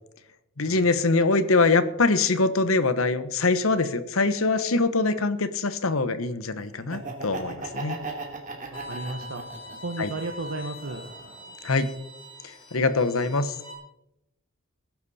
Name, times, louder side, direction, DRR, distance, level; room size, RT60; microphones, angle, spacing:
voice 1, 0.6-8.0 10.0-10.1 11.6-11.9 12.7-13.5, left 3 dB, 75° left, 12 dB, 1.1 m, -23 dB
Laughter, 6.8-9.9 10.4-11.5, right 3 dB, 40° right, 2.8 m, -37 dB
Bowed string instrument, 8.7-13.7, left 1 dB, 25° left, 3.7 m, -43 dB
voice 2, 8.7-9.4 9.8-11.1, right 2 dB, 70° right, 5 dB, 1.1 m, -34 dB
19.5 x 10.5 x 4.2 m, 0.89 s
head